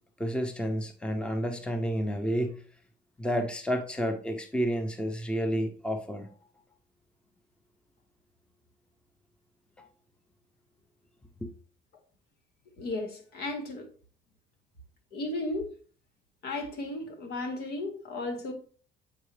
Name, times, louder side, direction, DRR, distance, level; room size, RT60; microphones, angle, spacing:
voice 1, 0.2-2.6 3.2-6.3 9.8-9.9 11.4-11.5, equal, 5° left, 6 dB, 0.7 m, -30 dB
voice 2, 12.8-13.9 15.1-15.7 16.4-18.5, left 2 dB, 70° left, 4 dB, 1.8 m, -34 dB
8.2 x 4.7 x 3.2 m, 0.40 s
cardioid pair, 110°, 17 cm